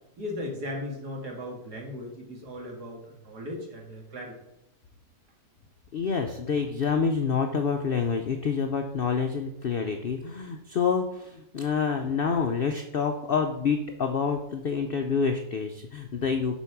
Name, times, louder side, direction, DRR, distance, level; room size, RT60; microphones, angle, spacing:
voice 1, 0.2-4.3, left 1 dB, 75° right, -1 dB, 2.4 m, -37 dB
voice 2, 5.9-16.6, left 5 dB, 75° left, 5 dB, 0.5 m, -27 dB
7.0 x 4.6 x 5.8 m, 0.85 s
omnidirectional pair, 1.7 m